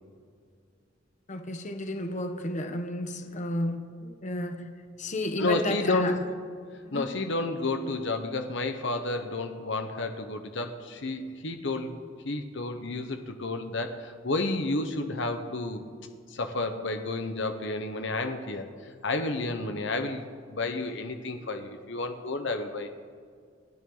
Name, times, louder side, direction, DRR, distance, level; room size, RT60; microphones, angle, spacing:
voice 1, 1.3-4.7 5.0-6.2 6.8-7.1, left 1 dB, 40° left, 1.2 m, -32 dB
voice 2, 5.4-6.3 6.9-12.0 12.2-15.8 16.3-18.7 19.0-22.9, left 2 dB, 65° left, 1.2 m, -31 dB
29.0 x 10.5 x 4.0 m
head